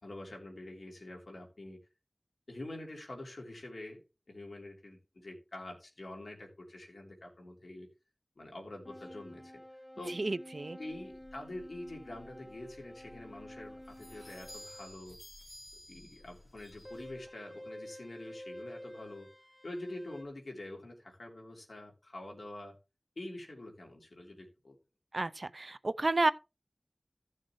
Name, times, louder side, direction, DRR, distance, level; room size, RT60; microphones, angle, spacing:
voice 1, 0.0-1.8 2.5-4.0 4.3-7.9 8.4-9.6 10.0-10.2 10.8-15.2 15.9-19.3 19.6-22.8 23.2-24.8, left 1 dB, 90° left, 3.2 m, -46 dB
sound 1, 8.8-14.9 16.8-20.2, left 1 dB, 10° left, 1.9 m, -50 dB
voice 2, 10.2-10.8 25.1-26.3, right 2 dB, 65° right, 0.5 m, -31 dB
sound 2, 10.9-17.3, left 1 dB, 50° left, 3.5 m, -55 dB
15.5 x 6.4 x 3.1 m
wide cardioid pair, 45°, 0 cm